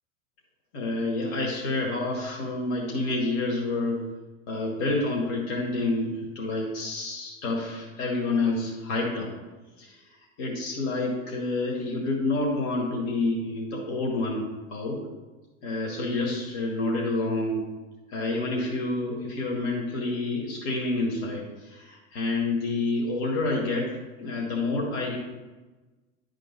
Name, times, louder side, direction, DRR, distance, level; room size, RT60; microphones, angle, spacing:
voice 1, 0.7-4.0 4.5-9.3 9.8-10.0 10.4-15.0 15.6-17.6 18.1-25.2, left 2 dB, 50° left, -3 dB, 2.0 m, -28 dB
11.0 x 3.9 x 5.5 m, 1.2 s
hypercardioid pair, 85°, 39 cm